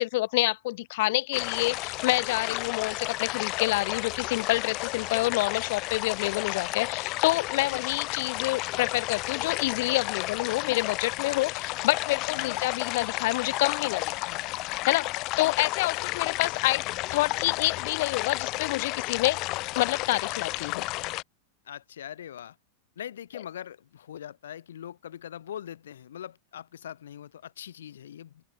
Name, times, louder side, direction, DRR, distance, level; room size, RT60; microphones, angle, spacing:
voice 1, 0.0-14.4 14.8-16.8 17.1-19.4 19.8-20.9, left 19 dB, 65° left, 4.3 m, -28 dB
sound 1, 1.3-21.2, left 21 dB, 45° left, 1.8 m, -32 dB
voice 2, 11.3-11.6 12.3-12.6 15.4-15.7 21.7-22.6 23.0-28.4, left 10 dB, 90° left, 7.1 m, -42 dB
open air
hypercardioid pair, 125°, 0 cm